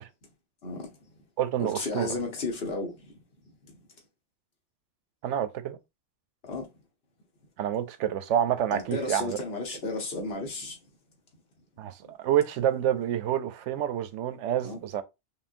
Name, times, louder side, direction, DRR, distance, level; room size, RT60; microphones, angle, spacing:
voice 1, 0.6-0.9 1.6-3.1 3.6-3.8 6.4-6.7 8.7-10.8 14.6-14.8, left 3 dB, 60° left, 1.3 m, -33 dB
voice 2, 1.4-2.1 5.2-5.8 7.6-9.4 11.8-15.0, right 10 dB, 85° right, 0.9 m, -28 dB
5.4 x 2.3 x 2.6 m
omnidirectional pair, 1.2 m